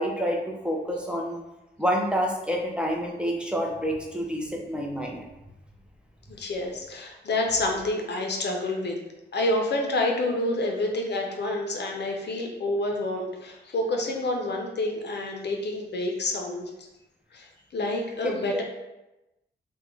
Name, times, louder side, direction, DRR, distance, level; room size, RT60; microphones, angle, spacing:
voice 1, 0.0-1.4 1.8-5.2 18.2-18.6, equal, 5° right, -1 dB, 0.6 m, -28 dB
voice 2, 6.3-9.0 9.3-16.7 17.3-18.6, left 2 dB, 60° left, 2 dB, 0.6 m, -28 dB
3.6 x 2.2 x 3.0 m, 0.98 s
cardioid pair, 70°, 19 cm